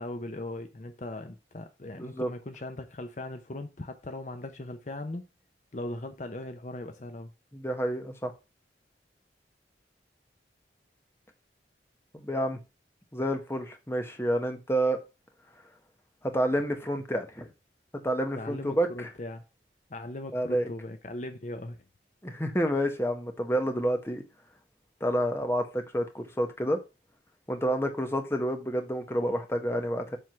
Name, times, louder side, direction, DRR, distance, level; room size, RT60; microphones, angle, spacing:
voice 1, 0.0-5.3 5.7-7.3 18.3-19.4 19.9-21.8, left 1 dB, 40° left, 0.7 m, -39 dB
voice 2, 2.0-2.3 7.5-8.3 12.1-12.6 13.1-15.0 16.3-17.5 18.0-19.1 20.3-20.7 22.2-24.2 25.0-26.8 27.5-30.2, equal, 15° left, 1.1 m, -29 dB
7.7 x 3.6 x 5.7 m
head